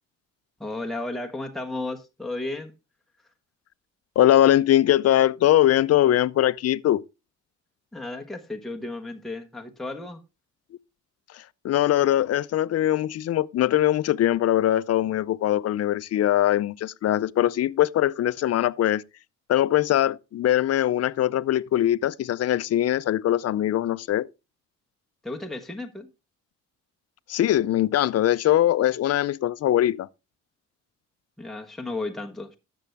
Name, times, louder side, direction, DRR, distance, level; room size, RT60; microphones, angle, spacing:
voice 1, 0.6-2.7 7.9-10.2 25.2-26.1 31.4-32.6, left 2 dB, ahead, 1.2 m, -33 dB
voice 2, 4.2-7.0 11.3-19.0 19.5-24.3 27.3-30.1, left 12 dB, 55° left, 0.5 m, -22 dB
12.5 x 6.9 x 3.4 m
cardioid pair, 90°, 30 cm